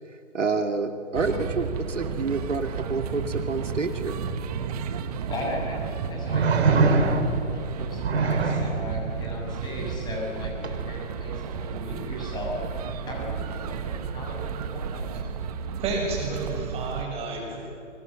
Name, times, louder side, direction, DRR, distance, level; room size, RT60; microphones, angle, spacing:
voice 1, 0.0-4.2, right 3 dB, 70° right, 6 dB, 2.6 m, -28 dB
sound 1, 1.1-17.0, right 6 dB, 30° right, 1.6 m, -32 dB
sound 2, 4.9-5.0 6.3-7.5 8.0-8.7 10.6-10.8, right 3 dB, 55° right, 3.6 m, -22 dB
voice 2, 5.3-12.6 13.0-15.1, left 2 dB, 10° left, -1 dB, 6.9 m, -37 dB
voice 3, 15.8-17.6, right 3 dB, 15° right, 0 dB, 6.8 m, -31 dB
28.5 x 25.0 x 7.6 m, 2.8 s
figure-of-eight pair, 145°, 38 cm